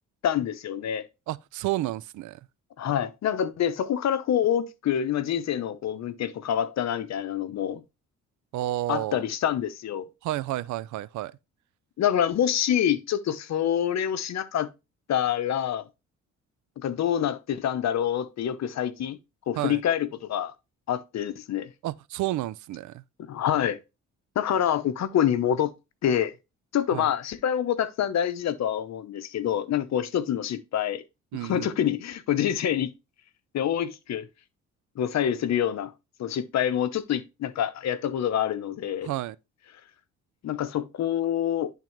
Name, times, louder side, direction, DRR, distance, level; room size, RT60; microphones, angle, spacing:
voice 1, 0.2-1.0 2.8-7.8 8.9-10.1 12.0-14.7 15.1-15.8 16.8-19.2 19.5-20.5 20.9-21.7 23.2-23.8 24.3-25.7 26.0-26.3 26.7-31.0 31.4-32.9 33.5-34.3 35.0-35.9 36.2-39.1 40.4-41.7, left 10 dB, 60° left, 0.8 m, -26 dB
voice 2, 1.3-2.4 8.5-9.2 10.2-11.4 19.6-19.8 21.8-23.0 26.9-27.1 31.3-31.7 39.0-39.4, right 15 dB, 75° right, 0.5 m, -31 dB
10.5 x 3.7 x 3.1 m
cardioid pair, 90°, 30 cm